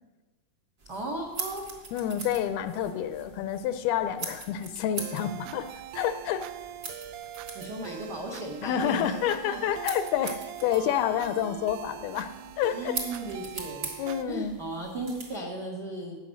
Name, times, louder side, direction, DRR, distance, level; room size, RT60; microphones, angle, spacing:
sound 1, 0.8-15.4, right 3 dB, 45° right, 1.3 m, -43 dB
voice 1, 0.9-1.7 7.5-9.6 12.7-13.9 14.3-16.2, right 2 dB, 65° right, 0 dB, 1.0 m, -36 dB
voice 2, 1.9-5.7 5.9-6.4 8.6-12.3 12.6-13.0 14.0-14.6, left 9 dB, 80° left, 10 dB, 2.4 m, -28 dB
sound 2, 5.0-14.2, right 12 dB, 85° right, 2.5 m, -42 dB
13.5 x 8.9 x 6.4 m, 1.2 s
omnidirectional pair, 4.6 m